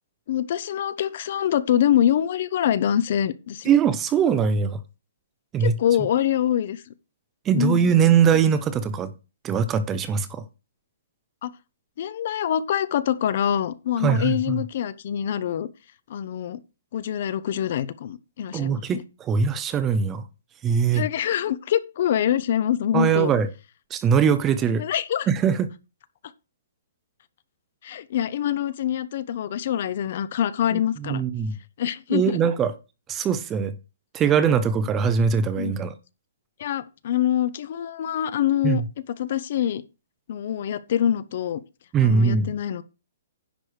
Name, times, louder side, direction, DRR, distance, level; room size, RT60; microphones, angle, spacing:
voice 1, 0.3-3.7 5.6-6.8 7.6-8.2 11.4-11.5 12.0-15.7 16.1-16.6 16.9-18.8 20.9-23.3 24.8-25.3 27.8-31.2 31.8-32.4 35.6-35.8 36.6-38.8 39.2-39.8 40.3-41.6 42.0-42.8, left 10 dB, 40° left, 0.7 m, -25 dB
voice 2, 3.6-4.8 5.5-5.8 7.5-9.1 9.4-10.4 14.0-14.6 18.5-20.2 20.6-21.1 22.9-23.5 23.9-24.8 25.3-25.7 30.7-31.6 32.1-32.7 33.1-33.7 34.1-35.9 38.6-38.9 41.9-42.5, right 7 dB, 10° right, 0.5 m, -21 dB
10.5 x 4.7 x 6.4 m
hypercardioid pair, 175°, 0 cm